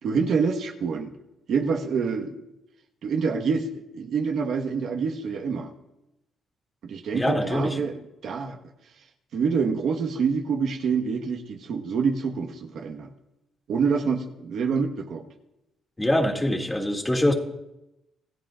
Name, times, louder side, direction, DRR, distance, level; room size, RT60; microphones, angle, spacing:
voice 1, 0.0-1.1 1.5-2.4 3.0-5.7 6.8-8.6 9.3-13.1 13.7-15.2, right 5 dB, 70° right, 3 dB, 1.4 m, -26 dB
voice 2, 7.1-7.8 16.0-17.3, left 1 dB, 15° left, 2 dB, 2.4 m, -24 dB
26.0 x 15.0 x 2.5 m, 0.93 s
cardioid pair, 90°, 0 cm